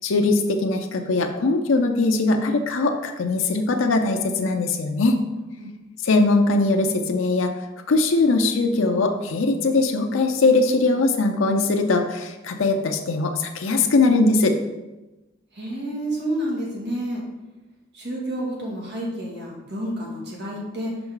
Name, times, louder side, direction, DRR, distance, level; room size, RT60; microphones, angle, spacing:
voice 1, 0.0-5.2 6.0-7.5 7.9-14.6, left 3 dB, 90° left, 4 dB, 0.6 m, -21 dB
voice 2, 15.5-17.2 17.9-21.0, right 1 dB, 60° right, -4 dB, 2.0 m, -29 dB
5.8 x 5.2 x 3.9 m, 1.1 s
head